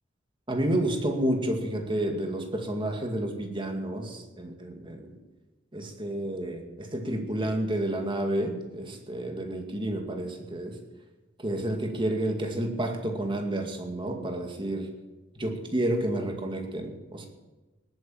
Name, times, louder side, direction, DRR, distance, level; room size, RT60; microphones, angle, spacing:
voice 1, 0.5-5.1 5.7-10.8 11.4-14.9 15.4-17.3, right 1 dB, 25° right, 3 dB, 2.1 m, -30 dB
19.0 x 9.1 x 7.2 m, 1.1 s
head